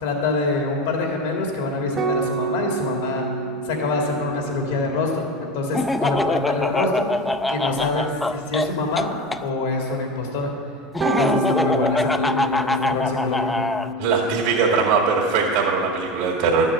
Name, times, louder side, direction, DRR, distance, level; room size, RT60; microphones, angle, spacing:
voice 1, 0.0-3.3 3.7-7.1 7.5-9.1 9.4-10.5 11.0-13.5, left 3 dB, 80° left, 1 dB, 2.3 m, -25 dB
sound 1, 2.0-8.6 11.0-15.9, right 1 dB, 30° right, 1.0 m, -30 dB
Laughter, 5.7-9.4 10.9-13.9, left 1 dB, 10° left, 0.4 m, -24 dB
voice 2, 14.0-16.7, right 5 dB, 65° right, -4 dB, 2.0 m, -20 dB
12.0 x 7.5 x 7.4 m, 2.3 s
supercardioid pair, 115°, 0 cm